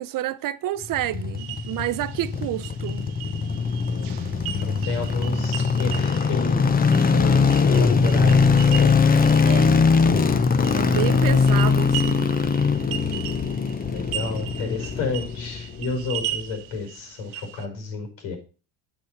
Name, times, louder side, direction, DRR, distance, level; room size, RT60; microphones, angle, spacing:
voice 1, 0.0-3.1 9.4-9.8 10.7-12.3, right 13 dB, 45° right, 0.6 m, -29 dB
sound 1, 0.8-16.1 16.3-16.4, left 5 dB, 20° left, 0.7 m, -21 dB
sound 2, 1.4-17.7, right 12 dB, 75° right, 1.1 m, -38 dB
voice 2, 3.9-8.9 11.1-11.6 13.9-18.4, left 3 dB, 80° left, 5.3 m, -32 dB
7.9 x 6.2 x 5.8 m
cardioid pair, 120°, 49 cm